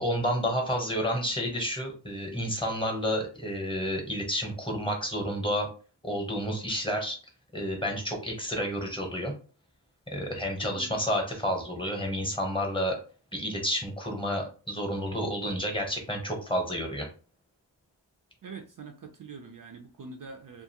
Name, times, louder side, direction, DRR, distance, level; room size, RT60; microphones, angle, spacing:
voice 1, 0.0-5.7 6.0-7.2 7.5-9.3 10.1-13.0 13.3-17.1, equal, 10° left, 2 dB, 0.8 m, -30 dB
voice 2, 10.6-11.0 18.4-20.6, right 4 dB, 50° right, 3 dB, 0.5 m, -44 dB
2.5 x 2.4 x 2.8 m, 0.37 s
wide cardioid pair, 90°, 44 cm